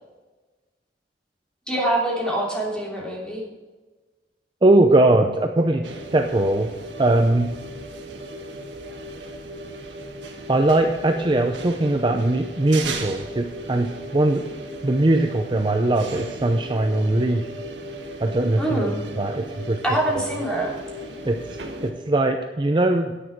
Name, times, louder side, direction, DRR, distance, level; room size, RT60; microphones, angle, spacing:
voice 1, 1.7-3.4 18.6-19.0 19.8-20.7, right 1 dB, 5° left, -4 dB, 3.1 m, -24 dB
voice 2, 4.6-5.8 6.1-6.7 7.0-7.5 10.5-14.4 14.8-17.5 18.2-18.8 19.2-19.8 20.2-20.3 21.2-23.1, right 2 dB, 25° right, 4 dB, 0.6 m, -20 dB
sound 1, 5.8-21.9, right 1 dB, 90° right, 1.6 m, -36 dB
10.0 x 9.4 x 4.6 m, 1.3 s
head